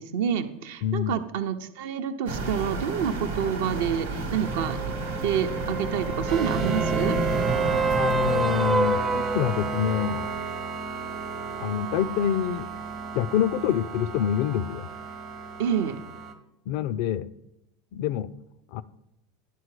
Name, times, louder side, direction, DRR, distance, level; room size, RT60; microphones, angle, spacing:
voice 1, 0.0-4.9 5.2-7.2 15.6-16.0, right 8 dB, 70° right, 8 dB, 0.6 m, -28 dB
voice 2, 0.8-1.2 7.9-10.3 11.6-12.7 13.1-14.9 16.7-17.3 17.9-18.3 18.7-18.8, left 10 dB, 60° left, 16 dB, 0.3 m, -26 dB
sound 1, 2.3-8.4, right 2 dB, 85° right, 1.0 m, -31 dB
sound 2, 4.5-10.1 14.2-14.3, right 3 dB, 10° right, 0.4 m, -29 dB
sound 3, 6.3-16.3, right 5 dB, 50° right, 1.0 m, -32 dB
10.0 x 3.8 x 4.8 m, 0.85 s
hypercardioid pair, 85°, 0 cm